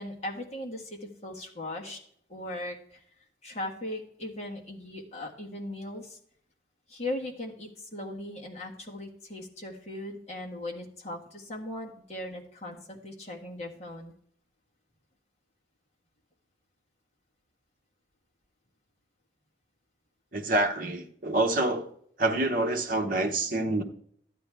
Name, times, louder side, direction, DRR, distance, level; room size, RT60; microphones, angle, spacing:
voice 1, 0.0-2.0 2.3-3.0 3.4-6.2 6.9-14.1, left 1 dB, 35° left, -1 dB, 1.6 m, -38 dB
voice 2, 20.3-21.9 22.2-23.8, right 2 dB, 45° right, 4 dB, 1.0 m, -27 dB
12.5 x 9.2 x 3.5 m, 0.64 s
head